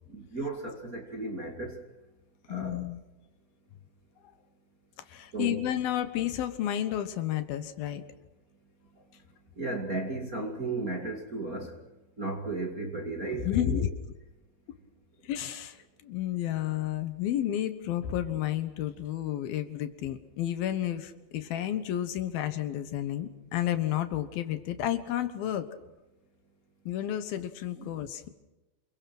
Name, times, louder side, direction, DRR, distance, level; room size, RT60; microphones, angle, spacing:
voice 1, 0.1-1.8 2.5-2.8 5.3-5.6 9.6-11.8 12.2-13.9 27.7-28.0, right 3 dB, 30° right, 1 dB, 2.1 m, -35 dB
voice 2, 2.5-3.0 5.1-8.0 13.2-13.9 15.2-15.8 16.0-25.7 26.9-28.3, left 12 dB, 75° left, 10 dB, 3.0 m, -31 dB
28.5 x 22.0 x 6.1 m, 1.0 s
omnidirectional pair, 4.4 m